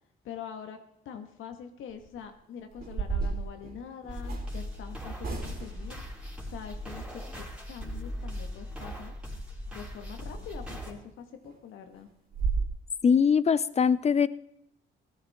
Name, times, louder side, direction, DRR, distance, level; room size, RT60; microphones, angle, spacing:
voice 1, 0.2-0.8 1.1-6.0 6.5-9.2 9.7-12.1, left 7 dB, 80° left, 6 dB, 1.9 m, -44 dB
sound 1, 1.9-2.2 2.7-4.5 5.2-5.9 10.4-10.5 10.9-11.1 11.4-11.5 11.9-12.0 12.3-12.7, right 4 dB, 50° right, 3.6 m, -32 dB
sound 2, 4.1-10.9, equal, 5° right, 3.8 m, -39 dB
voice 2, 13.0-14.3, left 6 dB, 30° left, 17 dB, 0.6 m, -22 dB
17.0 x 13.0 x 3.7 m, 0.76 s
cardioid pair, 90°, 20 cm